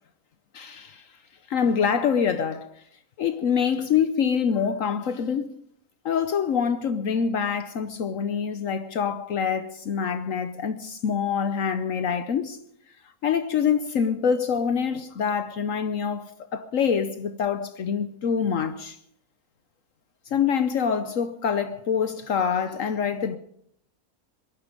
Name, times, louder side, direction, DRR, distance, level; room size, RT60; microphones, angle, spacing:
voice 1, 0.5-1.0 1.5-2.7 3.2-5.5 6.0-12.6 13.2-19.0 20.3-23.4, left 7 dB, 65° left, 1.2 m, -25 dB
21.5 x 12.5 x 5.2 m
omnidirectional pair, 1.5 m